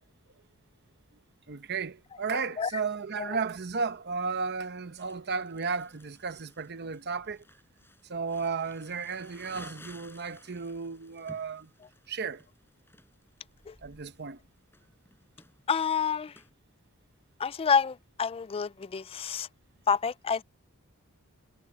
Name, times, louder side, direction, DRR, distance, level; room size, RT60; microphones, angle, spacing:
voice 1, 1.5-7.4 8.0-11.7 12.1-12.4 13.8-14.4, right 5 dB, 50° right, 0.9 m, -34 dB
Crumpling crinkling, 5.0-16.5, left 2 dB, 10° left, 5.7 m, -55 dB
voice 2, 15.7-16.3 17.4-19.5 19.9-20.4, left 6 dB, 25° left, 0.3 m, -28 dB
head